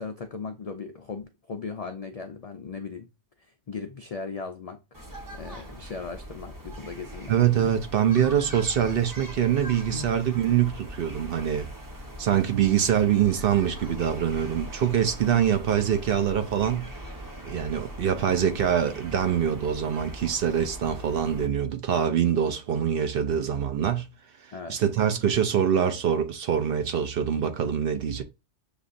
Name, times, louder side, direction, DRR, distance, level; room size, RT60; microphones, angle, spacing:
voice 1, 0.0-3.1 3.4-4.8 5.3-7.3 9.9-10.2 24.5-24.8, left 4 dB, 75° left, 0.3 m, -37 dB
sound 1, 4.9-21.5, equal, 20° right, 0.8 m, -41 dB
voice 2, 7.3-11.7 12.2-16.9 17.4-24.1 24.7-28.2, right 9 dB, 60° right, 0.7 m, -24 dB
6.7 x 2.4 x 2.5 m
omnidirectional pair, 1.2 m